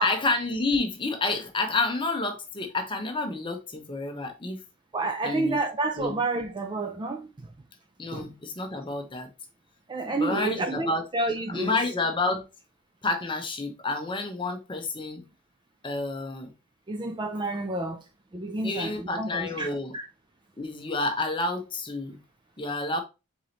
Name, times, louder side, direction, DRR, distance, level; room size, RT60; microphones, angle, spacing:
voice 1, 0.0-4.6 5.2-5.6 6.0-6.2 8.0-9.3 10.0-11.1 11.5-12.5 13.0-15.2 15.8-16.5 18.6-19.9 20.6-22.2 22.6-23.0, left 3 dB, 20° left, 0.8 m, -29 dB
voice 2, 4.9-7.3 8.1-8.3 9.9-11.8 16.9-18.0 18.3-19.7 19.9-20.1, right 2 dB, 20° right, 0.3 m, -29 dB
4.8 x 3.9 x 2.8 m
head